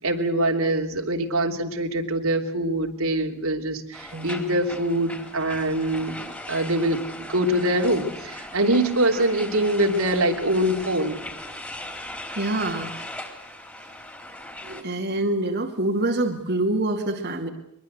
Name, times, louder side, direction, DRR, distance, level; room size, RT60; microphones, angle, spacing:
voice 1, 0.0-6.2 6.5-7.0 7.3-11.2, right 1 dB, 80° right, 3 dB, 3.2 m, -24 dB
sound 1, 3.9-14.8, left 1 dB, 10° left, 3.9 m, -38 dB
voice 2, 12.4-13.0 14.6-17.5, right 2 dB, 50° right, 2 dB, 2.4 m, -26 dB
23.5 x 22.5 x 8.0 m, 0.78 s
head